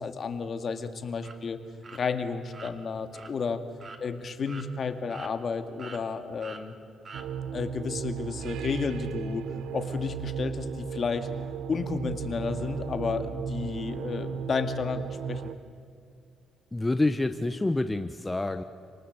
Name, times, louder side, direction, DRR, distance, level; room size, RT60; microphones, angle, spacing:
voice 1, 0.0-1.6 1.9-3.6 4.0-6.7 7.5-9.5 9.7-11.3 11.7-15.5, left 5 dB, 50° left, 8 dB, 2.1 m, -32 dB
sound 1, 1.2-1.4 1.8-2.0 2.5-2.7 3.1-3.3 3.8-4.0 4.5-4.7 5.1-5.5 5.8-6.0 6.4-6.6 7.1-7.3, right 4 dB, 40° right, 2.2 m, -44 dB
sound 2, 7.1-15.5, right 7 dB, 85° right, 0.8 m, -36 dB
voice 2, 16.7-18.6, left 2 dB, 15° left, 9 dB, 0.9 m, -27 dB
28.5 x 19.0 x 8.3 m, 2.5 s
cardioid pair, 90°, 0 cm